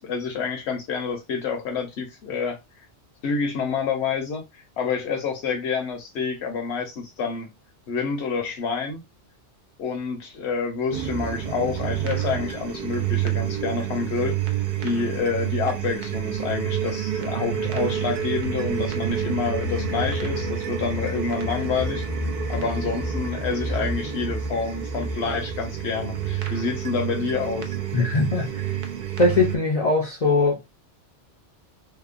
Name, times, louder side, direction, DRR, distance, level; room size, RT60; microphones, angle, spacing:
voice 1, 0.0-2.6 3.2-4.4 4.8-7.5 7.9-9.0 9.8-14.4 14.8-22.0 22.5-27.8, left 5 dB, 65° left, 1.1 m, -28 dB
sound 1, 10.9-29.6, right 7 dB, 55° right, 0.5 m, -28 dB
voice 2, 27.9-28.8 29.2-30.8, left 3 dB, 40° left, 0.6 m, -21 dB
2.9 x 2.2 x 2.4 m
omnidirectional pair, 1.2 m